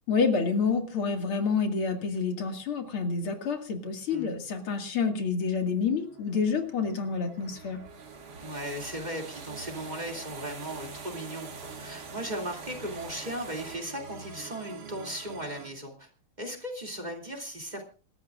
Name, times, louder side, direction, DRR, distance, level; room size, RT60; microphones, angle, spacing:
voice 1, 0.1-7.8, left 5 dB, 80° left, 4 dB, 3.0 m, -28 dB
sound 1, 5.7-15.7, right 5 dB, 85° right, 2.6 m, -47 dB
sound 2, 7.4-13.8, right 5 dB, 50° right, 2.2 m, -46 dB
voice 2, 8.4-16.1 16.4-17.8, equal, 20° right, 2 dB, 2.8 m, -37 dB
27.5 x 13.5 x 2.5 m, 0.38 s
omnidirectional pair, 2.3 m